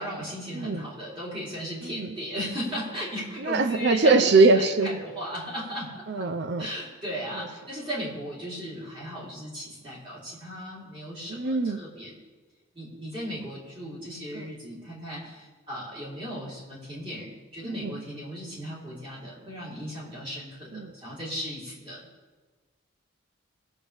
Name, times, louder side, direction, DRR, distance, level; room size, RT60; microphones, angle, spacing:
voice 1, 0.0-6.3 6.6-12.2 12.7-22.0, equal, 25° right, -6 dB, 3.6 m, -36 dB
voice 2, 0.5-0.8 1.8-2.1 3.4-5.0 6.1-6.7 11.3-11.8 14.3-14.4 17.6-18.0 20.7-20.9, right 3 dB, 55° right, 8 dB, 0.5 m, -22 dB
19.0 x 7.2 x 3.4 m, 1.3 s
head